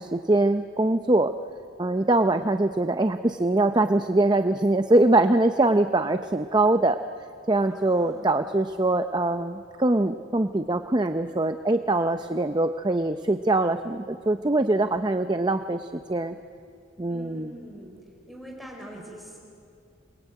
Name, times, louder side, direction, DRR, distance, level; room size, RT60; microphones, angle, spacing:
voice 1, 0.0-1.3 1.8-7.0 7.5-16.3 17.0-17.5, right 2 dB, 20° right, 8 dB, 0.6 m, -23 dB
voice 2, 2.0-2.4 7.5-8.4 17.1-17.9 18.3-19.4, equal, ahead, -1 dB, 4.5 m, -44 dB
28.5 x 21.0 x 9.1 m, 2.4 s
head